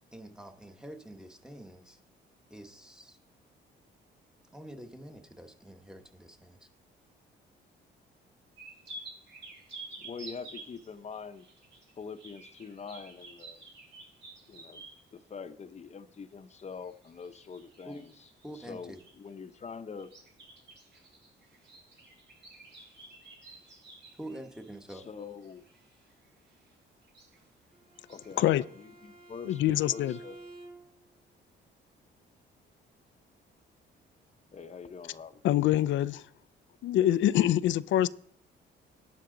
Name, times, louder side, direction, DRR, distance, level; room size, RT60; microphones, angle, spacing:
voice 1, 0.1-2.0 2.5-3.2 4.5-6.7 17.8-18.0 18.4-19.0 24.2-25.1, right 1 dB, 5° right, 1.2 m, -46 dB
sound 1, 8.6-15.1 16.7-19.3 20.0-26.1 26.5-26.7 27.0-27.4 27.9-28.5, right 2 dB, 65° right, 5.2 m, -51 dB
voice 2, 10.0-11.5 12.0-13.6 14.5-14.8 15.1-18.1 18.5-20.1 24.9-25.7 28.1-30.4 34.5-35.4, left 5 dB, 35° left, 0.8 m, -44 dB
Bowed string instrument, 27.7-31.1, right 2 dB, 45° right, 3.0 m, -51 dB
voice 3, 29.5-30.2 35.4-36.3 36.8-38.1, left 13 dB, 75° left, 0.4 m, -25 dB
11.5 x 9.2 x 3.8 m
cardioid pair, 90°, 20 cm